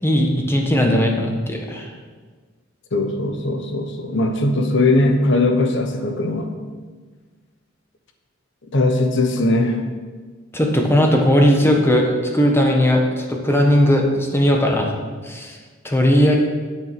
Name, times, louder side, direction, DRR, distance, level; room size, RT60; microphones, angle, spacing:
voice 1, 0.0-1.9 10.5-14.9 15.2-15.6 15.8-16.4, equal, 10° left, 1 dB, 1.3 m, -17 dB
voice 2, 2.9-6.5 8.7-9.8, left 2 dB, 65° left, 6 dB, 1.1 m, -19 dB
9.1 x 7.7 x 5.9 m, 1.5 s
head